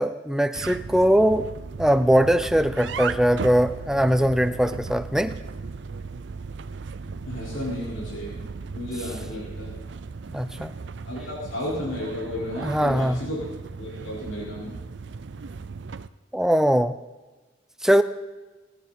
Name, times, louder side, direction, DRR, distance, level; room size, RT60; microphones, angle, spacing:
voice 1, 0.0-1.5 1.8-5.3 10.3-10.7 12.6-13.2 16.3-16.9 17.8-18.0, equal, 5° right, 12 dB, 0.5 m, -21 dB
sound 1, 0.5-16.1, right 4 dB, 65° right, 0.5 m, -36 dB
voice 2, 7.2-8.4 8.7-9.7 11.0-13.4 13.8-14.7, left 1 dB, 85° left, -6 dB, 4.9 m, -33 dB
23.0 x 10.5 x 4.4 m, 1.2 s
head